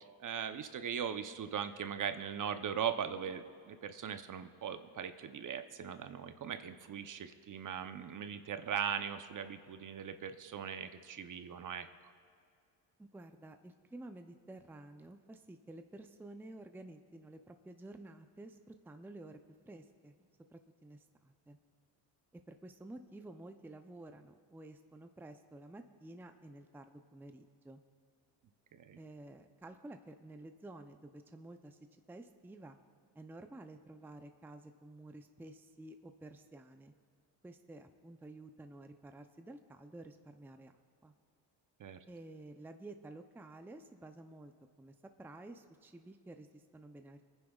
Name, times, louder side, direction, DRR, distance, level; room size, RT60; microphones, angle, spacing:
voice 1, 0.2-11.9 28.7-29.0 41.8-42.0, right 8 dB, 45° right, 9 dB, 0.8 m, -39 dB
voice 2, 13.0-19.4 19.6-20.1 20.5-21.6 22.5-27.8 29.0-31.8 32.1-32.8 33.1-36.9 37.4-41.1 42.1-44.5 44.8-47.3, right 2 dB, 5° right, 7 dB, 0.6 m, -52 dB
28.5 x 9.9 x 2.4 m, 2.3 s
cardioid pair, 80°, 43 cm